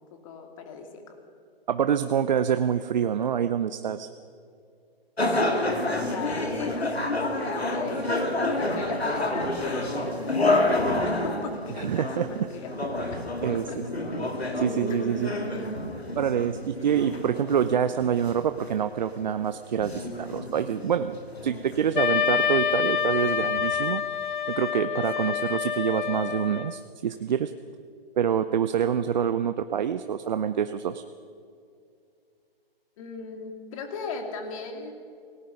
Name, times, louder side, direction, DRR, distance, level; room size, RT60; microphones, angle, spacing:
voice 1, 0.1-1.2 5.2-6.9 7.3-12.7 13.1-13.8 14.9-15.0 25.3-25.5 33.0-34.9, left 5 dB, 35° left, 5 dB, 2.9 m, -38 dB
voice 2, 1.7-4.1 11.8-12.5 13.1-13.8 14.2-14.3 14.6-15.3 16.2-21.2 21.4-24.0 24.5-27.5 28.2-31.0, right 8 dB, 45° right, 10 dB, 0.7 m, -26 dB
sound 1, 5.2-23.7, left 2 dB, 85° left, 2.8 m, -29 dB
Wind instrument woodwind instrument, 21.9-26.8, left 7 dB, 50° left, 0.7 m, -27 dB
27.0 x 18.0 x 5.3 m, 2.3 s
figure-of-eight pair, 135°, 30 cm